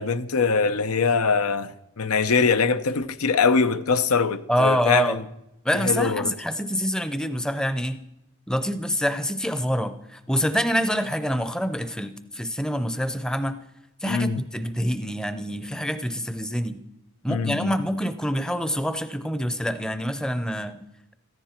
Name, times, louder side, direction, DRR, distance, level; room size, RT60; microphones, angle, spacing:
voice 1, 0.0-5.2 5.7-6.3 14.0-14.4 17.3-17.8, left 5 dB, 90° left, 0.7 m, -23 dB
voice 2, 4.5-5.2 5.6-8.0 8.5-13.6 14.0-16.8 17.2-20.8, equal, 5° left, 0.6 m, -26 dB
15.0 x 14.5 x 4.4 m
head